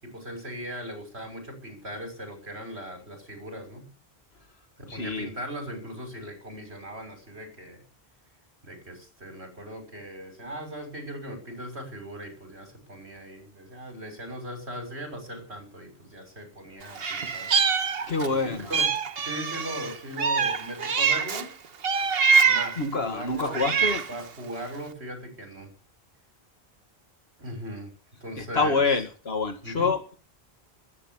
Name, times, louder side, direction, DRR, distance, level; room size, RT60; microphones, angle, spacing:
voice 1, 0.0-3.9 4.8-7.8 8.6-17.5 18.3-18.9 19.2-21.5 22.4-25.7 27.4-27.9 28.2-28.8 29.6-29.9, equal, 85° right, 4 dB, 6.3 m, -39 dB
voice 2, 4.9-5.3 18.1-18.7 22.8-24.0 28.4-30.1, left 4 dB, 75° left, 8 dB, 2.1 m, -26 dB
Meow, 17.0-18.3 18.7-21.5 21.8-22.8 23.4-24.2, right 5 dB, 70° right, 1.3 m, -24 dB
20.5 x 9.4 x 7.2 m, 0.39 s
omnidirectional pair, 1.1 m